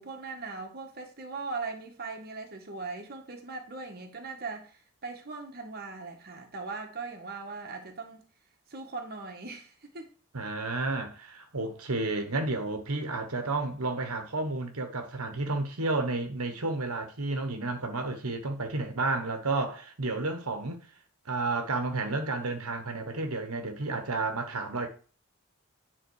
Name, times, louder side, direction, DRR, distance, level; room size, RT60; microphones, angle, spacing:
voice 1, 0.0-8.2 8.7-10.1, right 4 dB, 45° right, 1.4 m, -39 dB
voice 2, 10.3-20.8 21.2-24.9, right 3 dB, 80° right, 1.3 m, -31 dB
9.4 x 4.0 x 4.7 m
head